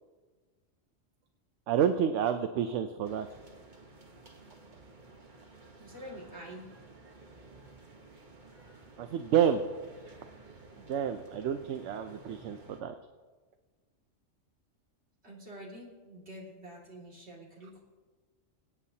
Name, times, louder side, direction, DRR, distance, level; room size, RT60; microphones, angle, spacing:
voice 1, 1.7-3.3 9.0-9.6 10.9-12.9, right 8 dB, 70° right, 8 dB, 0.9 m, -29 dB
sound 1, 3.0-12.8, right 3 dB, 40° right, 1.3 m, -54 dB
voice 2, 5.8-6.7 15.2-17.8, equal, 55° right, -3 dB, 2.7 m, -47 dB
24.0 x 8.9 x 2.8 m, 1.4 s
omnidirectional pair, 1.3 m